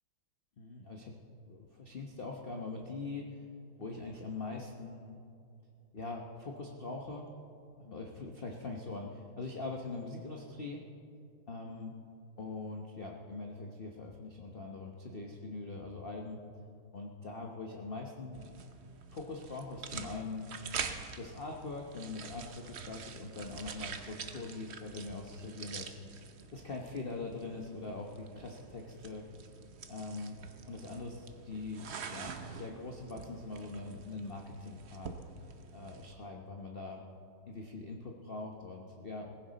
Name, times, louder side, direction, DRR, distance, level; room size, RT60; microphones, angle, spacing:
voice 1, 0.6-1.2 1.5-3.4 3.8-5.2 5.9-7.3 7.8-10.9 11.5-11.9 12.4-16.4 16.9-18.5 19.1-20.5 21.2-26.0 26.5-29.3 29.9-30.4 30.7-35.2 35.7-37.0 37.4-39.4, left 3 dB, 40° left, 1 dB, 0.8 m, -42 dB
sound 1, 18.3-36.1, right 6 dB, 70° right, 0.6 m, -46 dB
19.0 x 15.5 x 4.1 m, 2.5 s
omnidirectional pair, 2.3 m